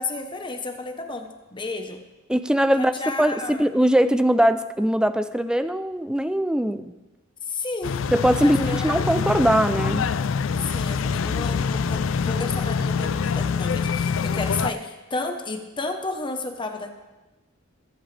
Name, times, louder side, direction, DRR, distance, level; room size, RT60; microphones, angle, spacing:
voice 1, 0.0-2.0 2.8-3.6 7.5-8.1 8.4-9.0 10.6-16.9, left 3 dB, 25° left, 5 dB, 1.0 m, -32 dB
voice 2, 2.3-2.9 3.2-6.9 8.1-10.1, equal, 5° right, 11 dB, 0.4 m, -21 dB
sound 1, 7.8-14.7, left 5 dB, 75° left, 0.4 m, -25 dB
21.0 x 8.8 x 3.4 m, 1.1 s
head